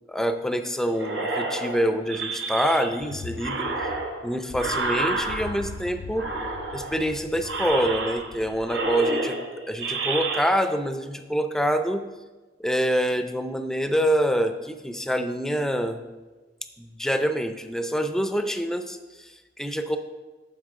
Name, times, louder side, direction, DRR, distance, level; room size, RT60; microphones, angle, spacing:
voice 1, 0.1-3.7 4.2-6.3 6.7-12.1 12.6-16.0 16.8-20.0, equal, 5° left, 8 dB, 0.5 m, -26 dB
sound 1, 0.9-3.0 3.4-5.8 6.1-7.0 7.4-8.4 8.7-10.4, right 3 dB, 85° right, 1.2 m, -30 dB
sound 2, 3.0-9.2, left 4 dB, 80° left, 0.4 m, -42 dB
10.0 x 7.0 x 3.7 m, 1.2 s
head